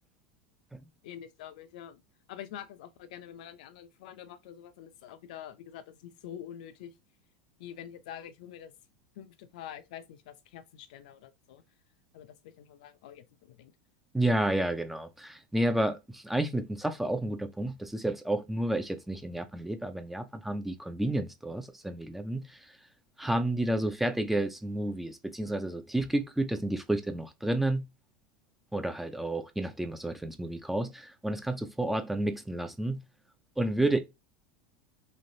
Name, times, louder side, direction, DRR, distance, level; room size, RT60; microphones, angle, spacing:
voice 1, 1.0-2.0 2.3-6.9 7.6-8.7 9.2-11.6 12.1-13.7, left 10 dB, 75° left, 0.5 m, -46 dB
voice 2, 14.1-22.6 23.2-27.8 28.7-33.0 33.6-34.0, right 1 dB, 5° right, 0.4 m, -30 dB
3.2 x 2.4 x 2.6 m
supercardioid pair, 125°, 4 cm